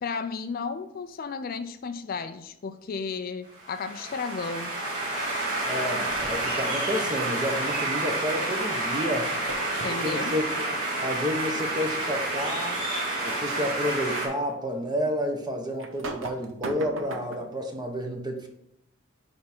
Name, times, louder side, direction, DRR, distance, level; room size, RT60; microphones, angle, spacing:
voice 1, 0.0-4.8 9.8-10.4, left 5 dB, 45° left, 10 dB, 0.4 m, -33 dB
sound 1, 3.6-14.3, right 2 dB, 40° right, 2.5 m, -29 dB
voice 2, 5.6-9.3 10.0-12.8 13.2-18.5, equal, 20° right, 3 dB, 1.1 m, -30 dB
sound 2, 6.1-6.6 9.5-10.2 12.0-12.1 12.5-12.7 13.4-13.8 14.4-14.5 15.8-17.5, right 2 dB, 70° right, 0.8 m, -38 dB
9.5 x 3.6 x 4.3 m, 0.79 s
head